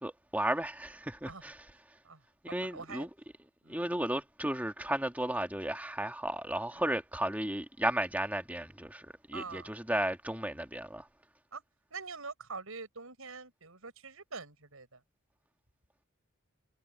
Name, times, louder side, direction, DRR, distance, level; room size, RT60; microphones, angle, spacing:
voice 1, 0.0-1.7 2.4-3.1 3.7-11.1, right 1 dB, 5° right, 1.9 m, -34 dB
voice 2, 2.7-3.1 3.6-3.8 9.3-9.7 11.5-11.6 11.9-15.0, right 4 dB, 75° right, 5.9 m, -44 dB
head